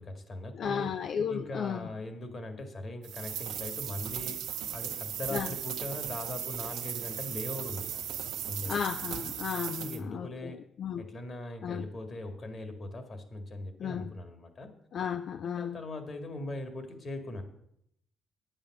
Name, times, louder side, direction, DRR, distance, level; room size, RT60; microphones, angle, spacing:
voice 1, 0.0-0.9 1.3-8.8 9.8-10.6 11.0-14.7 15.4-17.4, left 1 dB, 40° left, 1.9 m, -40 dB
voice 2, 0.6-1.8 5.3-5.5 8.7-10.5 10.8-11.0 11.6-11.8 13.8-14.1 14.9-15.8, left 8 dB, 65° left, 0.4 m, -34 dB
sound 1, 3.0-10.0, right 10 dB, 85° right, 1.0 m, -37 dB
9.3 x 8.9 x 6.0 m
cardioid pair, 90°, 0 cm